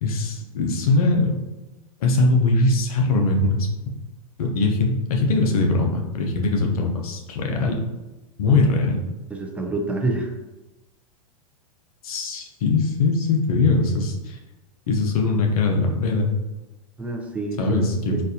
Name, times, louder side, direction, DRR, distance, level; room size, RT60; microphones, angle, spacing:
voice 1, 0.0-1.4 2.0-3.7 4.4-7.8 8.4-9.0 12.0-14.4 14.9-16.3 17.6-18.2, left 3 dB, 75° left, 2 dB, 0.7 m, -21 dB
voice 2, 8.5-8.8 9.3-10.3 17.0-17.8 18.1-18.2, right 3 dB, 5° right, 1 dB, 0.5 m, -28 dB
4.1 x 2.5 x 2.7 m, 1.1 s
hypercardioid pair, 110°, 19 cm